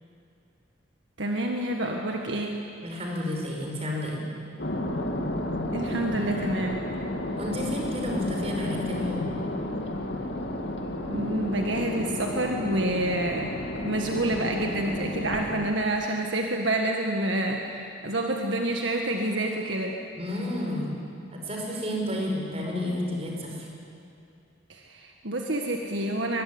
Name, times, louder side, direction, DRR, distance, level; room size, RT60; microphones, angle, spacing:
voice 1, 1.2-2.6 5.7-6.8 11.1-13.5 13.8-20.0 24.7-26.4, right 1 dB, 65° right, 2 dB, 1.8 m, -28 dB
voice 2, 2.8-4.3 7.4-9.3 20.2-23.7, left 1 dB, 30° right, 0 dB, 5.3 m, -31 dB
sound 1, 4.6-15.7, left 1 dB, 60° left, 2.2 m, -32 dB
23.5 x 22.0 x 9.7 m, 2.5 s
head